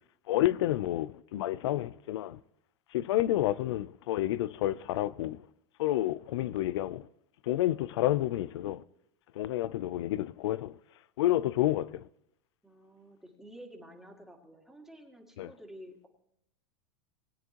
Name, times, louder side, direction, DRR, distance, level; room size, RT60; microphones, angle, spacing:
voice 1, 0.3-2.4 2.9-5.4 5.8-7.1 7.5-8.8 9.4-10.7 11.2-12.0 15.4-15.5, left 14 dB, 75° left, 0.6 m, -29 dB
voice 2, 12.6-16.1, equal, 5° right, 2.2 m, -51 dB
21.0 x 9.5 x 3.0 m
supercardioid pair, 135°, 14 cm